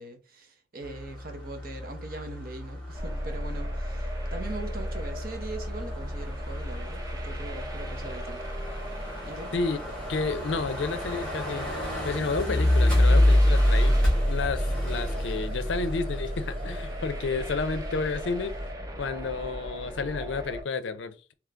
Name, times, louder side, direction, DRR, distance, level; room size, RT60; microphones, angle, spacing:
voice 1, 0.0-8.4 9.3-9.5, right 2 dB, 50° right, 0.9 m, -41 dB
sound 1, 0.8-18.7, left 1 dB, 5° left, 1.9 m, -28 dB
sound 2, 2.9-20.6, equal, 20° right, 0.6 m, -37 dB
voice 2, 10.1-11.7 12.0-14.0 14.3-18.5 19.0-21.3, left 4 dB, 70° left, 0.5 m, -31 dB
3.7 x 3.1 x 3.3 m
head